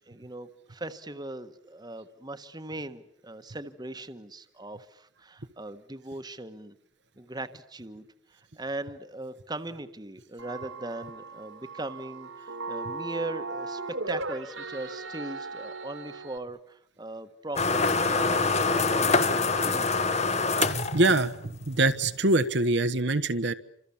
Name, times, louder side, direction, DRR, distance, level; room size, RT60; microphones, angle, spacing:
voice 1, 0.0-6.7 7.2-13.8 14.1-20.0, right 2 dB, 20° right, 10 dB, 1.4 m, -39 dB
sound 1, 10.4-16.4, right 3 dB, 75° right, 2.7 m, -37 dB
sound 2, 17.6-21.6, left 4 dB, 35° left, 1.4 m, -25 dB
voice 2, 20.6-23.5, right 2 dB, 60° right, 10 dB, 1.2 m, -24 dB
29.0 x 26.5 x 7.2 m, 0.71 s
head